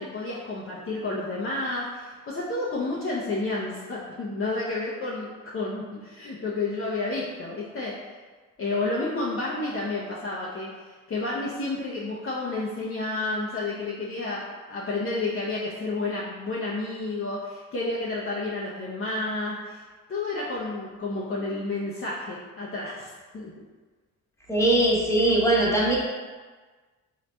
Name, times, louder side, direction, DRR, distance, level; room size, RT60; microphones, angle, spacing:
voice 1, 0.0-5.3 5.5-8.0 8.6-19.8 20.1-23.6, left 2 dB, 35° left, -6 dB, 0.6 m, -30 dB
voice 2, 24.5-26.0, right 1 dB, 5° left, -4 dB, 1.0 m, -21 dB
3.9 x 2.8 x 2.2 m, 1.4 s
hypercardioid pair, 50°, 39 cm